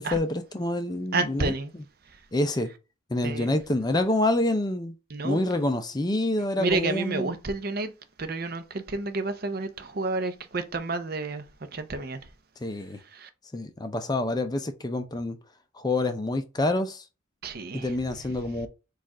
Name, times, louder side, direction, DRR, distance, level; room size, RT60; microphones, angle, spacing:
voice 1, 0.0-1.5 2.3-2.7 3.1-4.9 5.2-7.3 12.6-13.0 13.5-15.4 15.7-17.0 17.7-18.7, left 1 dB, 20° left, 0.4 m, -27 dB
voice 2, 1.1-1.7 3.2-3.5 5.1-5.4 6.6-7.9 8.2-11.4 11.7-12.2 13.1-13.3 17.4-17.9, right 3 dB, 45° right, 0.6 m, -30 dB
4.5 x 2.4 x 4.6 m
head